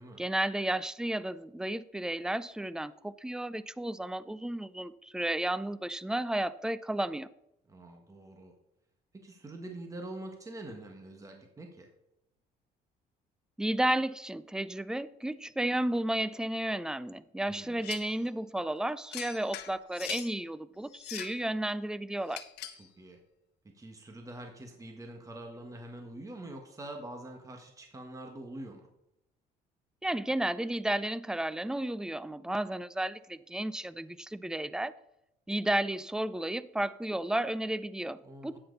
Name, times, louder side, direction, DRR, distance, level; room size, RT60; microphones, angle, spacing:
voice 1, 0.2-7.3 13.6-22.4 30.0-34.9 35.5-38.6, right 1 dB, 5° right, 0.4 m, -33 dB
voice 2, 7.7-8.5 9.1-11.9 17.5-17.9 22.8-23.2 23.7-28.9 38.2-38.6, right 1 dB, 20° right, 1.5 m, -45 dB
sound 1, 17.8-18.2 19.1-20.3 20.9-21.4 22.3-22.9, left 12 dB, 75° left, 1.0 m, -42 dB
10.0 x 8.7 x 4.0 m
cardioid pair, 110°, 17 cm